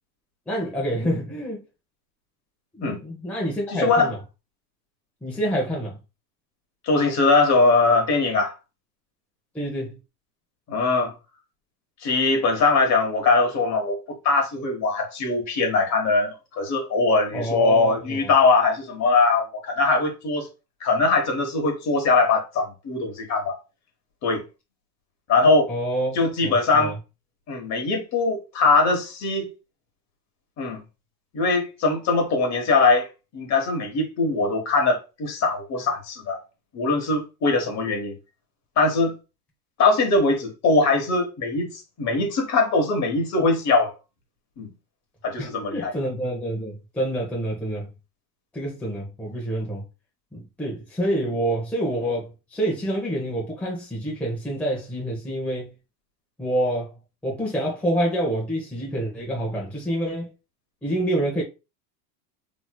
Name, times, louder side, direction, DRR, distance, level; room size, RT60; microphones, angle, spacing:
voice 1, 0.5-1.6 2.7-4.2 5.2-6.0 9.5-10.0 17.3-18.3 25.7-27.0 45.4-47.9 48.5-49.8 50.3-55.7 56.4-56.9 57.2-60.3 60.8-61.4, right 1 dB, 5° left, 0.8 m, -27 dB
voice 2, 3.7-4.1 6.8-8.5 10.7-11.1 12.0-20.5 20.8-23.6 24.2-24.4 25.3-25.7 26.1-27.0 27.5-29.5 30.6-30.8 31.3-36.4 36.7-38.1 38.8-39.1 39.8-43.9 44.6-44.7 45.2-45.9, left 3 dB, 35° left, 1.2 m, -21 dB
3.1 x 2.9 x 2.2 m
supercardioid pair, 115°, 48 cm